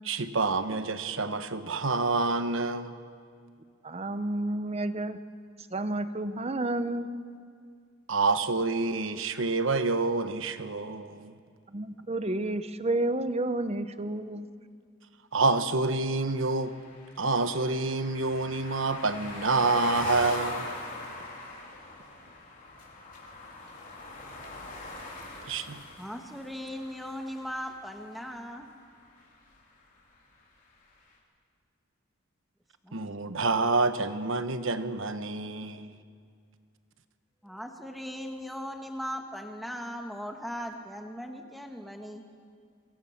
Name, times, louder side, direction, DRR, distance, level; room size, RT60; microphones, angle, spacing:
voice 1, 0.1-3.0 8.1-11.3 15.3-16.7 17.2-20.7 25.5-25.8 32.9-35.9, right 3 dB, 65° right, 10 dB, 1.1 m, -27 dB
voice 2, 3.8-5.2 5.7-7.1 11.7-14.5, right 2 dB, 30° right, 11 dB, 0.8 m, -30 dB
sound 1, 16.3-28.3, left 2 dB, 40° left, 4.0 m, -42 dB
voice 3, 26.0-28.7 32.8-32.9 37.4-42.3, equal, ahead, 3 dB, 1.7 m, -38 dB
27.0 x 23.5 x 5.9 m, 2.2 s
head